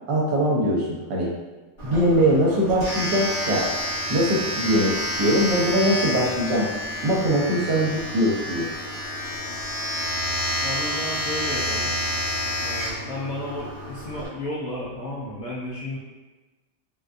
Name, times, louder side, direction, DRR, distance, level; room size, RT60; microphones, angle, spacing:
voice 1, 0.1-1.3 1.8-3.7 4.1-6.7 7.0-8.7, equal, 70° right, -4 dB, 1.3 m, -22 dB
Domestic sounds home sounds, 1.8-14.2, equal, 25° left, 0.5 m, -29 dB
voice 2, 10.6-11.9 12.6-16.0, left 1 dB, 70° left, -8 dB, 0.8 m, -33 dB
3.9 x 2.3 x 2.4 m, 1.2 s
omnidirectional pair, 2.1 m